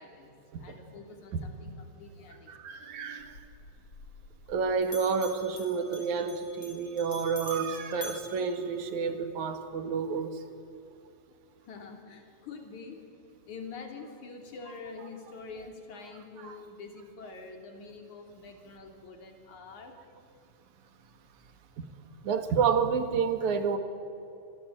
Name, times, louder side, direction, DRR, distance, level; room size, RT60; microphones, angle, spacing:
voice 1, 0.0-2.6 11.6-13.0 13.5-20.0, left 4 dB, 70° left, 4 dB, 4.5 m, -46 dB
voice 2, 2.5-3.4 4.5-10.4 16.4-16.6 21.8-21.9 22.2-23.8, right 5 dB, 70° right, 8 dB, 3.1 m, -29 dB
Bell, 3.2-4.6 4.8-9.3, left 2 dB, 45° left, 6.0 m, -47 dB
26.0 x 21.0 x 9.1 m, 2.7 s
omnidirectional pair, 3.5 m